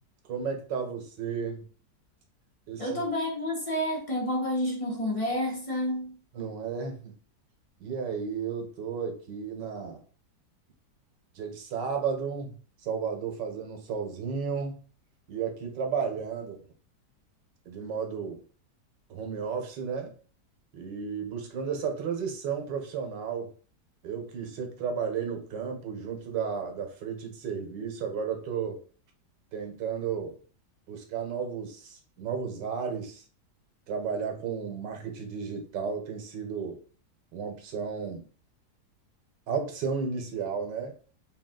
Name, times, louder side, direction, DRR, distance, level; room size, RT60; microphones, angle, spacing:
voice 1, 0.3-1.6 2.7-3.0 6.3-7.1 7.8-10.0 11.4-14.8 15.3-16.6 17.7-18.4 19.1-20.1 20.7-23.5 24.0-28.8 29.5-30.4 30.9-33.2 33.9-36.8 37.3-38.3 39.5-40.9, right 6 dB, 90° right, 1.6 m, -33 dB
voice 2, 2.8-6.2, left 1 dB, 30° left, 0.6 m, -29 dB
4.0 x 2.4 x 3.7 m
omnidirectional pair, 1.9 m